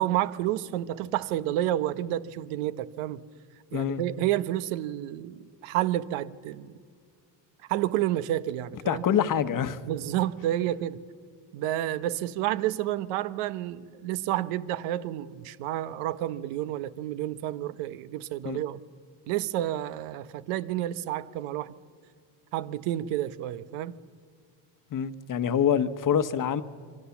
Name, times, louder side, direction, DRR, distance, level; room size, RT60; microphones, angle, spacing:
voice 1, 0.0-3.2 3.7-6.7 7.7-9.0 9.8-11.0 11.5-18.8 19.3-21.7 22.5-24.0, right 13 dB, 90° right, 1.1 m, -30 dB
voice 2, 3.7-4.0 8.9-9.8 18.4-18.6 24.9-26.6, left 8 dB, 40° left, 1.1 m, -25 dB
27.5 x 24.5 x 7.2 m
cardioid pair, 125°, 49 cm